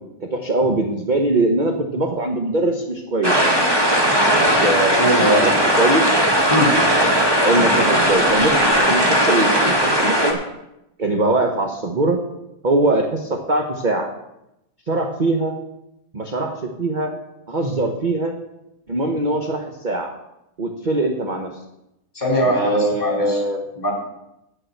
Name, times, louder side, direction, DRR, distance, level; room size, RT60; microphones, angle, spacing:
voice 1, 0.3-3.3 4.3-6.2 7.4-10.4 11.0-12.2 12.6-14.1 14.9-15.6 16.1-17.1 17.5-18.4 18.9-20.1 20.6-21.5 22.4-23.6, right 2 dB, 35° right, 3 dB, 0.9 m, -22 dB
sound 1, 3.2-10.3, equal, 15° right, 1.5 m, -17 dB
voice 2, 5.0-5.5 6.5-6.8 7.5-7.7 22.1-23.4 23.8-23.9, equal, 25° left, -1 dB, 3.5 m, -20 dB
8.9 x 7.0 x 7.8 m, 0.88 s
omnidirectional pair, 1.8 m